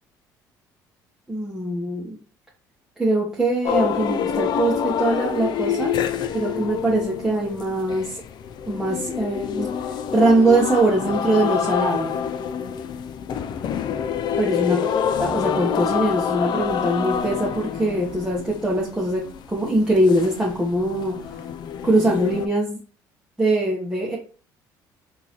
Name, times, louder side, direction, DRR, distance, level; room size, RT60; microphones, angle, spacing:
voice 1, 1.3-2.2 3.0-5.9 6.3-8.2 8.7-12.1 14.4-14.8 15.2-21.2 21.8-22.8 23.4-24.2, right 1 dB, 5° right, -5 dB, 1.0 m, -22 dB
sound 1, 3.6-22.5, left 8 dB, 55° left, 0.4 m, -27 dB
3.7 x 2.7 x 3.0 m, 0.38 s
supercardioid pair, 75°, 9 cm